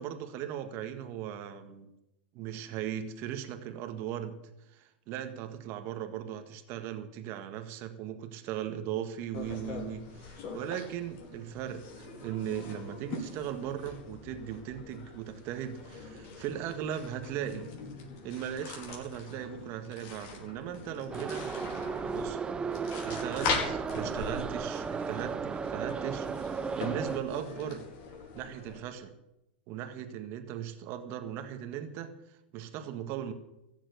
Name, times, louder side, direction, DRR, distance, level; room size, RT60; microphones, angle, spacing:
voice 1, 0.0-1.9 2.3-4.4 4.7-17.7 18.2-21.5 22.0-22.4 22.7-27.9 28.3-29.1 29.7-33.3, right 10 dB, 45° right, 8 dB, 1.8 m, -38 dB
sound 1, 9.3-28.8, left 4 dB, 50° left, 4.8 m, -42 dB
Subway metro underground, 21.1-27.2, right 5 dB, 15° right, 0.7 m, -35 dB
15.0 x 7.5 x 9.4 m, 0.88 s
hypercardioid pair, 120°, 6 cm